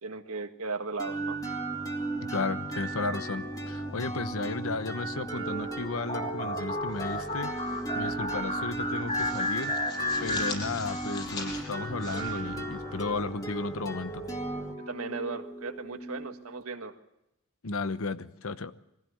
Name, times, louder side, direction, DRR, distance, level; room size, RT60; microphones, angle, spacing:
voice 1, 0.0-1.4 14.8-16.9, right 4 dB, 80° right, 7 dB, 1.7 m, -36 dB
sound 1, 1.0-16.6, right 2 dB, 15° left, 2.2 m, -36 dB
voice 2, 2.3-7.5 8.0-9.7 10.2-14.2 17.6-18.7, left 3 dB, 70° left, 12 dB, 1.0 m, -34 dB
sound 2, 6.1-11.2, left 2 dB, 35° left, 1.7 m, -33 dB
sound 3, 6.9-7.8 8.1-8.3 8.7-13.2, left 3 dB, 50° left, 6.5 m, -43 dB
22.5 x 16.0 x 7.9 m, 0.85 s
head